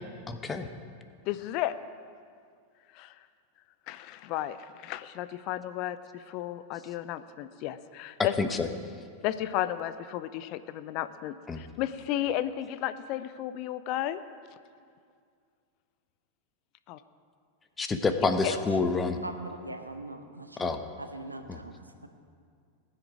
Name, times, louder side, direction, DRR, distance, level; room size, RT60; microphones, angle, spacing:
voice 1, 0.3-0.7 8.4-8.7 11.5-11.6 17.8-19.2 20.6-20.8 21.5-21.6, left 4 dB, 15° left, 8 dB, 1.0 m, -28 dB
voice 2, 1.3-1.7 2.9-3.1 3.9-8.4 9.2-14.2 16.9-17.0 18.4-18.5, left 13 dB, 40° left, 13 dB, 0.6 m, -33 dB
voice 3, 18.5-18.8 19.2-22.1, right 1 dB, 85° right, 6 dB, 1.1 m, -41 dB
19.0 x 10.0 x 4.9 m, 2.2 s
figure-of-eight pair, 90°, 0 cm